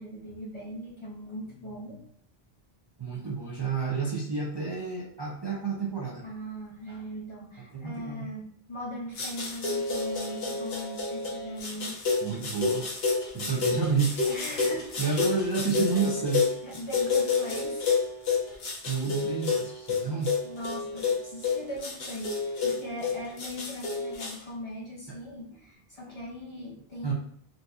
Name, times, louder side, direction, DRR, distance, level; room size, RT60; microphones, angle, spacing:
voice 1, 0.0-2.0 6.2-12.0 13.2-13.4 14.2-15.3 16.6-18.0 20.4-27.1, equal, 35° left, -4 dB, 0.6 m, -40 dB
voice 2, 3.0-6.2 7.7-8.2 12.2-12.9 13.3-14.2 15.0-16.5 18.9-20.3 25.1-25.2 27.0-27.1, right 5 dB, 35° right, -4 dB, 0.4 m, -30 dB
sound 1, 9.2-24.3, left 4 dB, 75° left, 1.0 m, -29 dB
3.9 x 2.6 x 2.3 m, 0.62 s
omnidirectional pair, 1.0 m